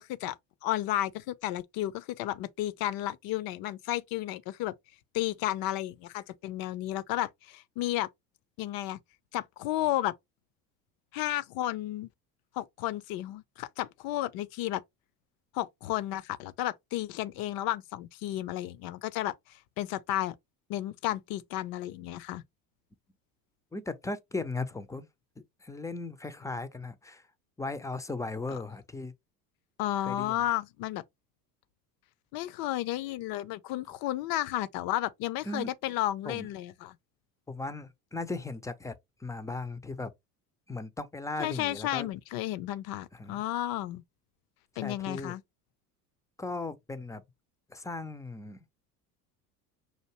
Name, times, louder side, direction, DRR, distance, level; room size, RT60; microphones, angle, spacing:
voice 1, 0.0-4.7 5.1-8.1 8.6-9.0 9.3-10.1 11.1-12.1 12.5-14.8 15.5-20.3 20.7-22.4 28.5-28.6 29.8-31.0 32.3-37.0 41.4-44.0 44.8-45.4, left 14 dB, 50° left, 0.6 m, -33 dB
voice 2, 23.7-25.1 25.6-27.3 27.6-29.1 30.0-30.5 35.4-35.7 36.2-36.5 37.5-40.1 40.7-42.1 43.1-43.4 44.8-45.3 46.4-47.2 47.7-48.6, left 3 dB, 5° left, 0.5 m, -37 dB
5.7 x 2.5 x 2.9 m
hypercardioid pair, 80°, 47 cm